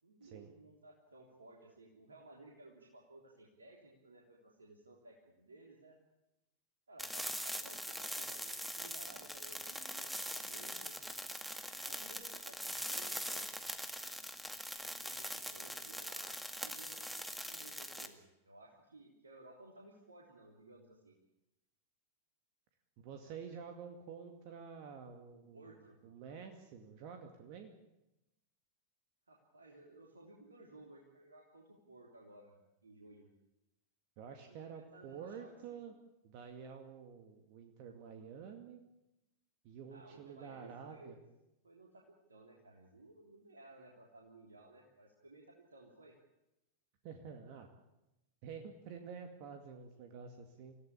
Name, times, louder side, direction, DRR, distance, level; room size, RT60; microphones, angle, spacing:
voice 1, 0.0-6.0 6.9-11.0 11.7-13.5 14.8-21.2 25.5-26.0 29.3-33.3 34.3-35.8 39.9-41.2 41.6-45.4 45.7-46.2, right 2 dB, 75° right, 0 dB, 3.4 m, -58 dB
sound 1, 7.0-18.1, equal, ahead, 2.1 m, -42 dB
voice 2, 23.0-27.7 34.2-35.9 36.2-38.8 39.6-41.2 47.0-47.7 48.4-50.8, right 6 dB, 45° right, 5 dB, 2.3 m, -49 dB
27.5 x 16.5 x 8.6 m, 0.93 s
figure-of-eight pair, 90°, 0 cm